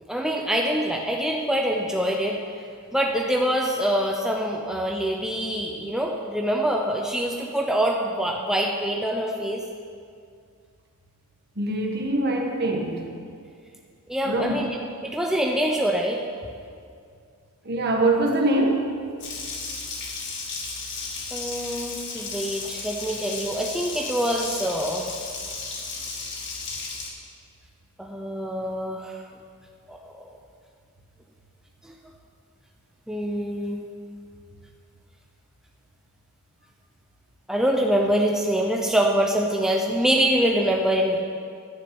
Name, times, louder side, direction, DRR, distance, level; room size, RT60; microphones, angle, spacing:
voice 1, 0.1-2.4 2.9-9.6 14.1-14.7 15.0-16.2 21.3-25.1 28.0-29.2 29.9-30.3 31.8-31.9 33.1-33.8 37.5-41.2, equal, ahead, 0 dB, 0.6 m, -25 dB
voice 2, 11.6-13.0 14.2-14.7 17.6-19.0, right 2 dB, 50° right, 1 dB, 1.5 m, -23 dB
Water tap faucet, 19.2-27.1, left 4 dB, 55° left, 2.0 m, -34 dB
11.0 x 6.5 x 8.6 m, 2.3 s
head